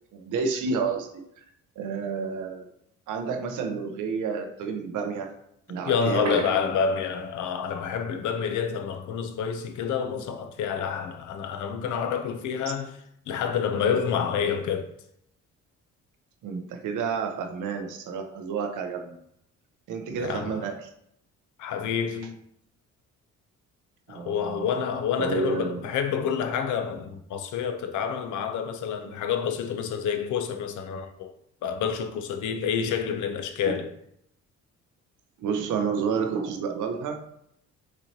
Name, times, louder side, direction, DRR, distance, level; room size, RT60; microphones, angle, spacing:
voice 1, 0.1-1.1 1.8-2.7 3.1-5.3 5.7-6.4 12.7-12.8 16.4-19.2 19.9-20.9 24.1-24.7 25.2-25.8 33.6-33.8 35.4-37.2, right 5 dB, 80° right, 0.8 m, -30 dB
voice 2, 5.8-13.0 13.3-14.9 20.1-20.7 21.6-22.4 24.1-31.3 31.6-33.9, left 7 dB, 75° left, 0.6 m, -28 dB
sound 1, 6.0-7.7 8.0-8.1 8.5-8.6, right 3 dB, 65° right, 1.5 m, -38 dB
6.1 x 3.1 x 2.8 m
cardioid pair, 90°, 30 cm